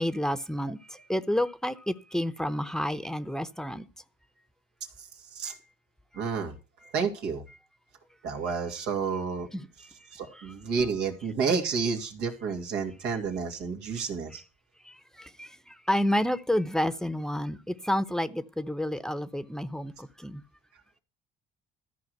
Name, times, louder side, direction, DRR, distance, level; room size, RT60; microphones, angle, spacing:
voice 1, 0.0-3.9 5.5-5.6 6.8-6.9 9.5-9.9 10.3-10.5 14.8-20.4, left 1 dB, 5° left, 0.8 m, -30 dB
voice 2, 6.2-6.5 6.9-7.4 8.2-9.5 10.1-14.4, right 5 dB, 90° right, 2.5 m, -30 dB
13.5 x 4.9 x 7.9 m
cardioid pair, 110°, 17 cm